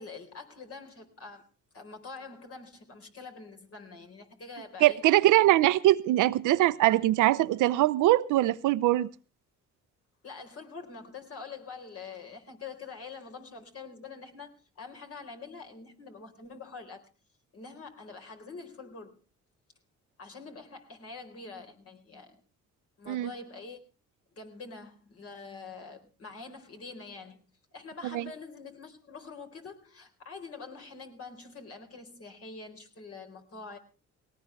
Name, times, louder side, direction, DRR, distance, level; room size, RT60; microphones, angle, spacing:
voice 1, 0.0-1.4 1.7-5.0 10.2-17.1 17.5-19.2 20.2-22.4 23.0-23.8 24.3-27.4 27.7-33.8, left 4 dB, 50° left, 4.3 m, -45 dB
voice 2, 4.8-9.1 23.1-23.3 28.1-28.3, right 15 dB, 90° right, 0.8 m, -22 dB
19.0 x 18.0 x 3.3 m
cardioid pair, 90°, 30 cm